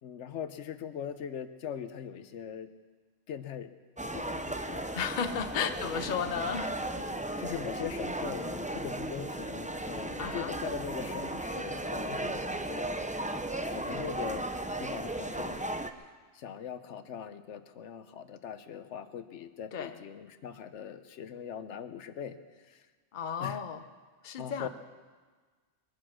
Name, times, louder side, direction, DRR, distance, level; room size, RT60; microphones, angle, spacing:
voice 1, 0.0-2.7 3.3-3.7 4.1-4.9 5.6-5.7 7.4-12.9 13.7-14.4 14.8-15.6 16.3-22.4 22.7-22.8 23.4-23.6 24.4-24.7, left 8 dB, 85° left, 11 dB, 1.1 m, -40 dB
sound 1, 4.0-15.9, right 1 dB, 10° right, 0.4 m, -36 dB
voice 2, 4.9-6.7 10.2-10.5 19.7-20.0 23.1-23.8 24.2-24.7, left 7 dB, 45° left, 9 dB, 0.9 m, -33 dB
21.5 x 10.5 x 6.3 m, 1.5 s
omnidirectional pair, 1.2 m